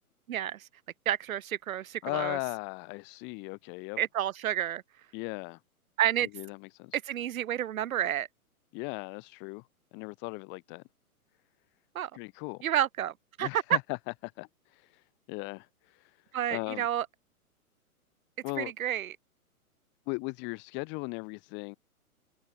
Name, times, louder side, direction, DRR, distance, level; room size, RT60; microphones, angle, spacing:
voice 1, 0.3-0.7 1.1-2.4 4.0-4.8 6.0-6.3 6.9-8.3 11.9-12.1 12.6-13.8 16.3-17.1 18.6-19.1, right 11 dB, 70° right, 0.6 m, -30 dB
voice 2, 2.0-4.0 5.1-5.6 6.3-7.0 8.7-10.8 12.1-12.6 13.4-14.0 14.2-16.8 18.4-18.7 20.1-21.8, left 32 dB, 25° left, 1.0 m, -38 dB
figure-of-eight pair, 120°, 44 cm